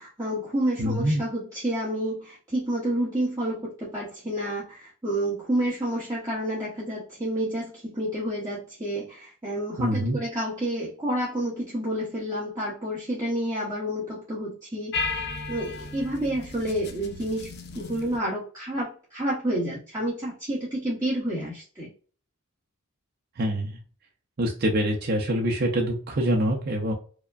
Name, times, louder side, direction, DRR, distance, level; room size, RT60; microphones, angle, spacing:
voice 1, 0.0-21.9, right 1 dB, 15° right, -8 dB, 1.0 m, -29 dB
voice 2, 0.8-1.2 9.8-10.2 23.4-23.8 24.4-26.9, equal, 45° right, 0 dB, 0.6 m, -25 dB
sound 1, 14.9-18.2, left 4 dB, 45° left, 0.5 m, -34 dB
4.8 x 2.2 x 2.4 m, 0.39 s
head